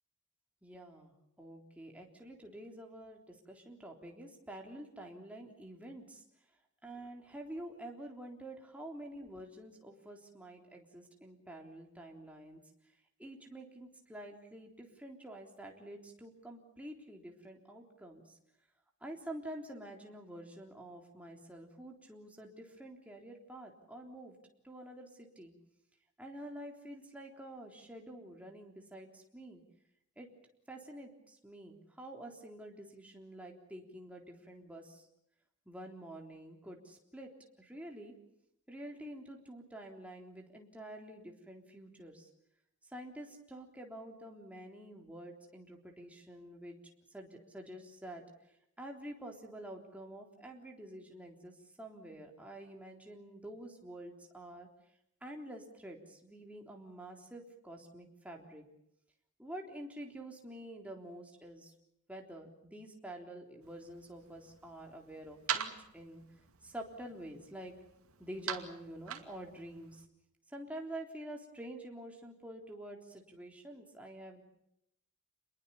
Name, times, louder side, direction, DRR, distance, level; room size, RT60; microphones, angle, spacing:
voice 1, 0.6-1.1 1.4-6.2 6.8-12.6 13.2-18.3 19.0-24.4 24.6-25.5 26.2-29.6 30.2-30.3 30.7-35.1 35.7-37.3 37.6-38.1 38.7-42.3 42.8-46.8 47.1-48.2 48.8-54.7 55.2-58.6 59.4-61.7 62.1-66.2 66.6-67.7 68.2-70.1 70.5-74.4, right 1 dB, 5° right, 1 dB, 3.6 m, -48 dB
sound 1, 63.6-70.1, right 8 dB, 75° right, 2.4 m, -44 dB
28.0 x 22.0 x 7.1 m, 0.76 s
head